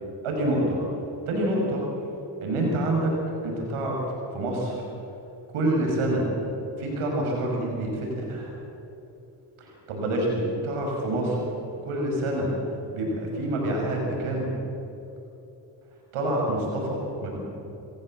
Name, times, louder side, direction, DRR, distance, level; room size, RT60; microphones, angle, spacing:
voice 1, 0.2-0.8 1.3-1.8 2.4-3.1 3.4-4.0 4.3-4.8 5.5-6.3 6.8-8.6 9.6-11.4 11.8-12.5 12.9-14.5 16.1-17.4, right 1 dB, 85° right, -1 dB, 6.3 m, -27 dB
27.5 x 16.0 x 7.8 m, 2.9 s
supercardioid pair, 40°, 50 cm